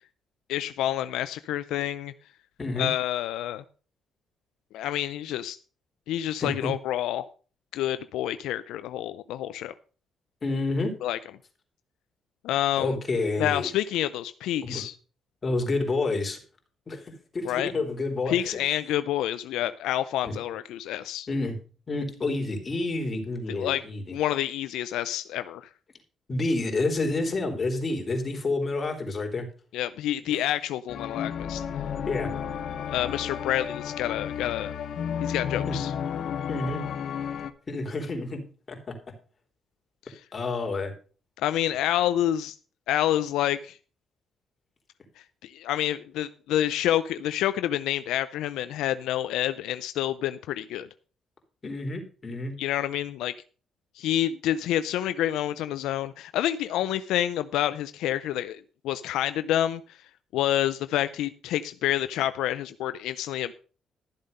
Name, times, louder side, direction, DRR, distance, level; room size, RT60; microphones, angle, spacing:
voice 1, 0.5-2.1 2.8-3.6 4.7-5.6 6.1-7.3 7.7-9.7 11.0-11.2 12.4-13.0 13.4-14.9 17.4-17.7 18.3-21.3 23.5-23.8 24.1-25.7 29.7-31.6 32.9-34.7 35.2-35.9 40.1-40.2 41.4-42.6 42.9-43.8 45.4-50.9 52.6-53.3 54.0-59.8 60.3-63.5, left 12 dB, 90° left, 13 dB, 0.5 m, -28 dB
voice 2, 2.6-2.9 6.4-6.7 10.4-11.0 12.8-13.7 14.6-14.8 15.4-16.4 16.9-18.6 20.2-20.3 21.3-21.6 21.9-24.2 26.3-29.5 30.3-30.4 32.1-32.3 35.7-35.8 36.5-36.8 37.7-39.0 40.3-40.9 51.6-52.6, left 2 dB, 35° left, 3 dB, 3.5 m, -29 dB
sound 1, 30.9-37.5, left 8 dB, 65° left, 1.0 m, -32 dB
13.0 x 7.4 x 5.4 m, 0.39 s
cardioid pair, 90°, 0 cm